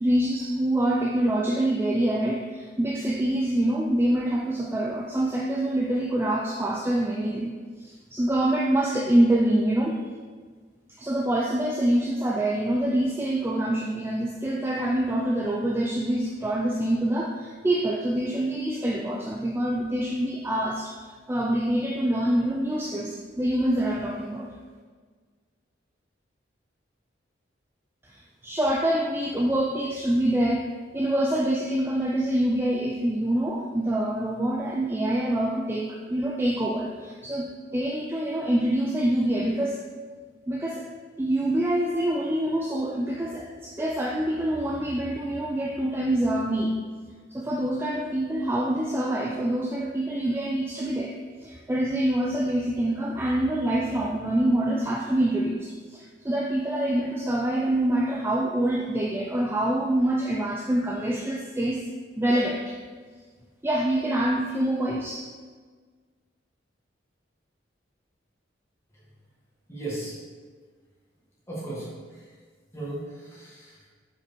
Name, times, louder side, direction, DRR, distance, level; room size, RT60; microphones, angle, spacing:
voice 1, 0.0-10.0 11.0-24.5 28.0-37.5 37.7-39.8 40.5-40.9 41.2-46.7 47.3-61.8 62.2-62.8 63.6-65.3, right 1 dB, 10° right, -2 dB, 0.3 m, -26 dB
voice 2, 69.7-70.2 71.5-72.3 72.7-73.9, right 2 dB, 15° left, -6 dB, 1.5 m, -36 dB
5.2 x 4.3 x 4.4 m, 1.5 s
head